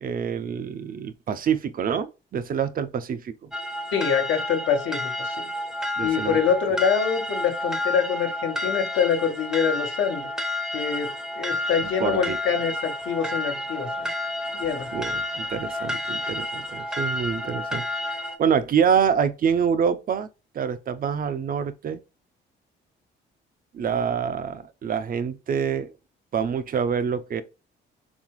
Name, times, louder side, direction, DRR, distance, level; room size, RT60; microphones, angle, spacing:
voice 1, 0.0-3.5 6.0-6.4 12.0-12.4 14.9-17.9 18.4-20.3 20.5-22.0 23.7-25.9 26.3-27.4, right 7 dB, 45° right, 0.5 m, -26 dB
sound 1, 3.5-18.4, left 1 dB, 5° right, 0.6 m, -30 dB
voice 2, 3.9-5.4 6.0-10.3 10.7-14.1 14.6-14.9, left 7 dB, 75° left, 1.0 m, -25 dB
4.1 x 3.4 x 3.0 m
cardioid pair, 90°, 20 cm